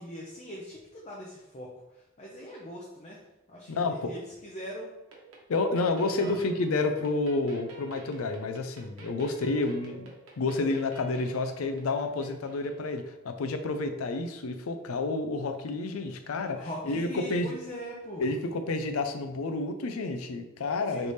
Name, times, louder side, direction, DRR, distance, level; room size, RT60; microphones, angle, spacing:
voice 1, 0.0-1.7 2.2-3.2 3.5-4.9 6.2-6.4 16.5-18.3 20.9-21.1, equal, 30° left, -3 dB, 0.6 m, -41 dB
voice 2, 3.7-4.1 5.5-10.1 10.4-17.5 18.2-21.1, left 3 dB, 80° left, 7 dB, 0.5 m, -30 dB
sound 1, 5.1-13.2, right 3 dB, 85° right, 1.0 m, -50 dB
3.3 x 3.3 x 4.1 m, 0.93 s
head